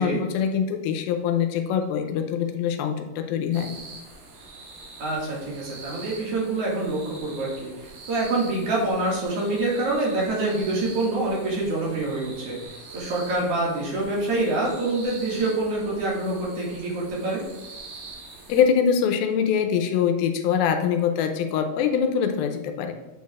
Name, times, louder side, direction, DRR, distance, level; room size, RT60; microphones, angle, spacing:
voice 1, 0.0-3.7 18.5-22.9, left 7 dB, 85° left, 6 dB, 2.4 m, -23 dB
sound 1, 3.5-18.6, right 3 dB, 70° right, 2.8 m, -44 dB
voice 2, 5.0-12.6 12.9-17.4, right 2 dB, 50° right, -4 dB, 2.4 m, -26 dB
8.6 x 6.4 x 2.4 m, 1.0 s
omnidirectional pair, 4.3 m